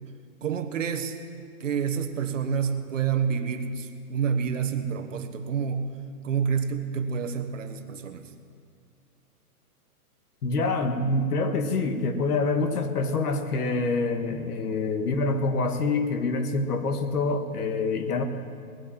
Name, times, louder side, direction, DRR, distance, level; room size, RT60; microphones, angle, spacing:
voice 1, 0.4-1.2 1.6-5.9 6.2-8.3, right 7 dB, 55° right, 7 dB, 1.3 m, -28 dB
voice 2, 10.4-18.2, left 3 dB, 80° left, 7 dB, 1.7 m, -26 dB
19.0 x 8.6 x 7.5 m, 2.2 s
hypercardioid pair, 175°, 45 cm